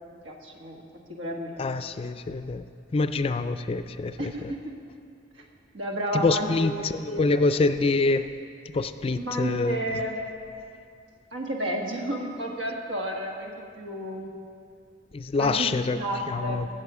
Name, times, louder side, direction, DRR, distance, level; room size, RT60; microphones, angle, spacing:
voice 1, 0.1-1.5 4.2-4.4 5.7-7.4 9.2-10.2 11.3-14.3 15.4-16.7, right 1 dB, 85° right, 1 dB, 1.5 m, -32 dB
voice 2, 1.6-2.6 2.9-4.3 6.1-8.3 8.7-9.8 15.1-16.0 16.3-16.7, left 3 dB, 30° left, 11 dB, 0.3 m, -25 dB
16.5 x 7.5 x 4.9 m, 2.4 s
head